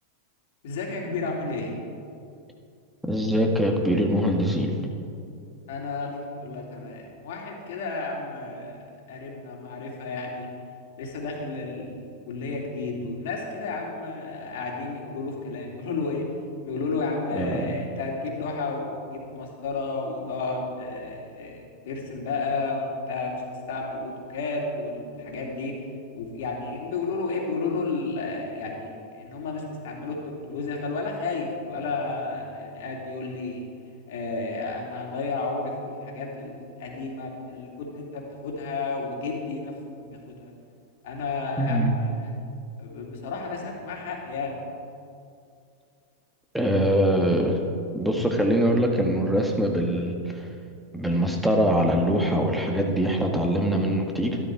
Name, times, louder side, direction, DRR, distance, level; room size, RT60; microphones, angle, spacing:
voice 1, 0.6-1.7 5.7-10.5 11.0-12.0 12.3-16.3 16.6-25.7 26.1-33.6 34.1-40.5 41.0-42.3 42.8-44.6, left 3 dB, 65° left, -1 dB, 2.9 m, -32 dB
voice 2, 3.1-4.8 17.3-17.7 41.6-42.0 46.5-47.6 47.9-50.5 50.9-54.4, equal, ahead, 1 dB, 1.8 m, -23 dB
13.0 x 12.0 x 4.8 m, 2.5 s
hypercardioid pair, 100°, 0 cm